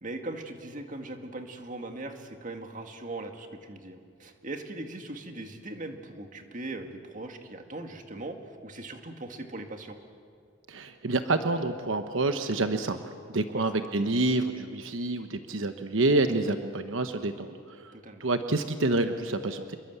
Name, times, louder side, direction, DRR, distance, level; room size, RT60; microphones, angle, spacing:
voice 1, 0.0-8.4 8.6-10.0 13.5-13.9 17.9-18.2, right 2 dB, 40° right, 5 dB, 2.0 m, -40 dB
voice 2, 10.7-13.0 13.3-17.9 18.2-19.8, right 2 dB, 80° right, 8 dB, 1.1 m, -28 dB
28.0 x 22.5 x 8.2 m, 2.2 s
head